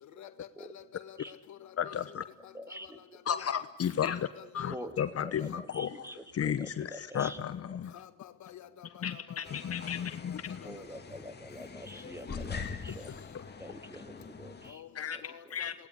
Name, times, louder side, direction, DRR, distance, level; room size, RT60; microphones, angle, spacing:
voice 1, 0.2-1.9 2.4-2.8 3.3-3.7 4.1-4.7 7.9-9.9 11.9-12.0 14.7-15.7, left 11 dB, 70° left, 11 dB, 1.5 m, -50 dB
voice 2, 1.8-2.2 3.3-4.3 4.5-6.1 6.3-8.0 9.0-10.8 12.3-12.4 13.3-13.4 14.9-15.2 15.5-15.7, left 8 dB, 50° left, 12 dB, 1.1 m, -33 dB
voice 3, 2.5-3.2 4.7-7.4 10.6-13.1 13.6-14.8 15.4-15.5, equal, 10° right, 8 dB, 2.8 m, -46 dB
sound 1, 9.4-14.7, left 5 dB, 35° left, 2.6 m, -43 dB
26.0 x 19.5 x 9.8 m, 1.0 s
cardioid pair, 90°, 30 cm